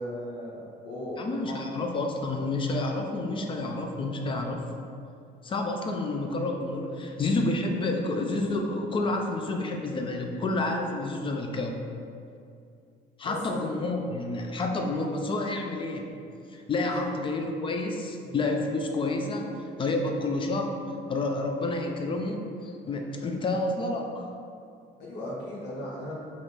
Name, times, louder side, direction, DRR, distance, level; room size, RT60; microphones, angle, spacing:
voice 1, 0.0-1.6 13.2-13.6 18.2-18.3 23.1-23.3 25.0-26.1, left 1 dB, 80° left, -7 dB, 1.1 m, -37 dB
voice 2, 1.2-4.7 5.4-11.8 13.2-16.1 16.5-20.8 21.1-24.3, left 2 dB, 30° left, 2 dB, 0.4 m, -29 dB
4.1 x 2.5 x 3.3 m, 2.5 s
cardioid pair, 110°, 17 cm